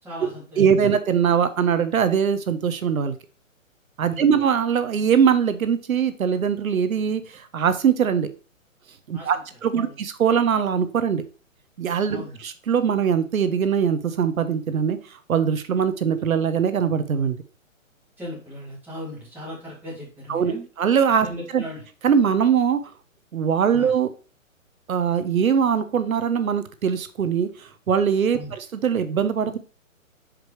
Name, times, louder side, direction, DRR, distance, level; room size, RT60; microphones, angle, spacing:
voice 1, 0.0-0.9 4.1-4.4 9.1-9.4 9.7-10.0 12.1-12.4 18.2-20.6 21.2-21.8 23.7-23.9 28.3-28.5, equal, 5° right, -7 dB, 2.2 m, -37 dB
voice 2, 0.6-3.1 4.0-8.3 9.1-11.2 11.8-15.0 15.3-17.4 20.3-21.3 21.5-21.6 22.0-22.8 23.3-24.1 24.9-29.6, right 7 dB, 80° right, 11 dB, 0.9 m, -22 dB
6.0 x 5.1 x 3.1 m, 0.36 s
hypercardioid pair, 150°, 41 cm